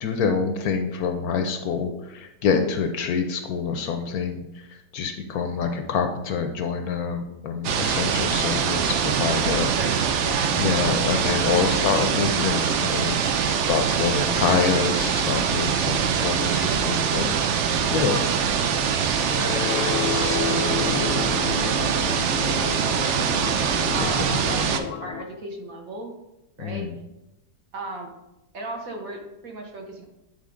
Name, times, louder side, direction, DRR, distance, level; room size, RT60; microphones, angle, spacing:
voice 1, 0.0-4.4 4.9-9.7 10.5-17.6 17.9-18.2 20.7-21.0 24.0-24.3 26.6-27.0, left 6 dB, 70° left, 5 dB, 1.0 m, -26 dB
sound 1, 7.6-24.8, right 7 dB, 75° right, 0.6 m, -23 dB
voice 2, 9.4-10.6 18.0-18.3 19.4-20.1 20.4-23.4 23.9-26.1 26.6-26.9 27.7-28.1 28.5-30.1, right 2 dB, 55° right, 1 dB, 1.4 m, -36 dB
sound 2, 19.2-25.2, left 7 dB, 85° left, 1.3 m, -31 dB
8.8 x 3.7 x 3.7 m, 0.92 s
omnidirectional pair, 1.8 m